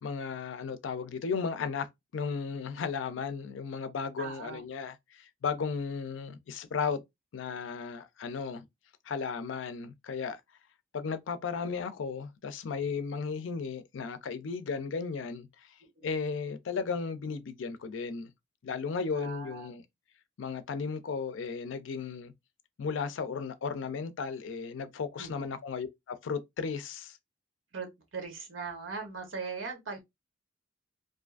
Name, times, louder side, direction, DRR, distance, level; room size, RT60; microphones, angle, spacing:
voice 1, 0.0-1.9 2.1-7.0 7.3-8.6 9.1-10.4 10.9-15.7 16.0-18.3 18.6-19.8 20.4-22.3 22.8-27.2, left 5 dB, 70° left, 0.4 m, -35 dB
voice 2, 4.2-4.6 16.0-16.1 19.1-19.8 25.2-25.5 27.7-30.0, right 4 dB, 80° right, 0.9 m, -40 dB
2.5 x 2.4 x 2.4 m
head